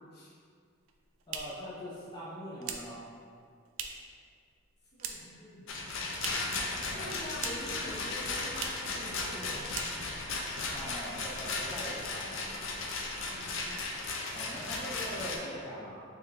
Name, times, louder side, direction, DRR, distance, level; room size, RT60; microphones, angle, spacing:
sound 1, 0.7-4.2 4.5-5.4 5.7-6.6 6.9-7.8 8.1-8.2 8.5-8.9 9.3-9.4 9.7-10.3, right 7 dB, 75° right, 0.4 m, -42 dB
voice 1, 1.3-3.0 6.6-7.1 10.7-13.0 14.3-16.0, equal, 20° left, -10 dB, 0.6 m, -43 dB
voice 2, 5.0-5.9 6.9-10.0 13.2-13.6, equal, 50° left, -7 dB, 1.0 m, -45 dB
Rattle, 5.7-15.4, left 3 dB, 65° left, 0.5 m, -36 dB
3.6 x 3.3 x 3.3 m, 2.2 s
head